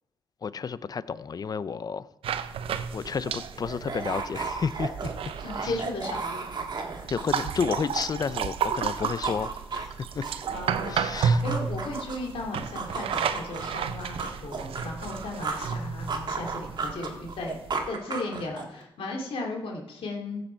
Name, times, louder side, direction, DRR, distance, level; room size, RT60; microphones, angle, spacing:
voice 1, 0.4-2.1 2.9-5.1 5.6-5.8 7.1-10.2 10.9-11.4, left 6 dB, 45° left, 0.5 m, -31 dB
sound 1, 2.2-17.9, right 7 dB, 85° right, 0.6 m, -32 dB
sound 2, 2.7-2.8 3.0-8.5 8.8-12.3 12.8-15.8 16.1-18.8, right 4 dB, 50° right, 1.7 m, -35 dB
voice 2, 5.4-6.2 10.5-11.1 11.4-17.6 17.9-20.4, left 2 dB, 80° left, 2.5 m, -35 dB
15.5 x 6.8 x 4.5 m
cardioid pair, 90°, 9 cm